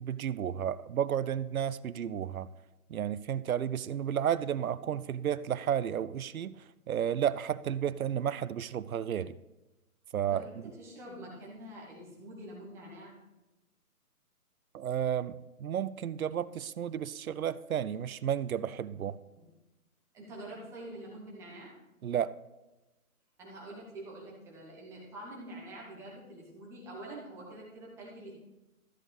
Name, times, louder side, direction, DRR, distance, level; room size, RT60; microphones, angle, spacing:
voice 1, 0.0-2.5 2.9-9.4 10.1-10.6 14.7-19.2 22.0-22.3, right 9 dB, 70° right, 17 dB, 0.5 m, -32 dB
voice 2, 10.8-13.2 19.3-19.4 20.1-21.7 23.4-28.4, right 1 dB, 5° right, -4 dB, 1.1 m, -46 dB
13.5 x 8.1 x 3.3 m, 1.0 s
figure-of-eight pair, 150°, 45 cm